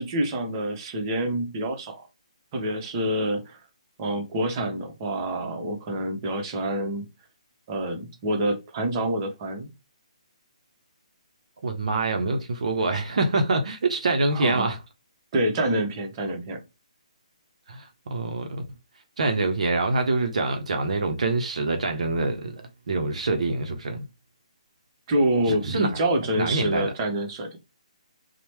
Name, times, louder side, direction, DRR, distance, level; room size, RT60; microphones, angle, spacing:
voice 1, 0.0-2.1 2.5-3.6 4.0-7.0 7.7-9.7 14.3-14.7 15.3-16.6 25.1-27.5, right 1 dB, 30° right, 0.8 m, -27 dB
voice 2, 11.6-14.8 17.7-18.6 19.2-24.1 25.5-26.0 26.4-26.9, right 3 dB, 65° right, 0.6 m, -25 dB
3.0 x 2.0 x 2.9 m
figure-of-eight pair, 145°, 4 cm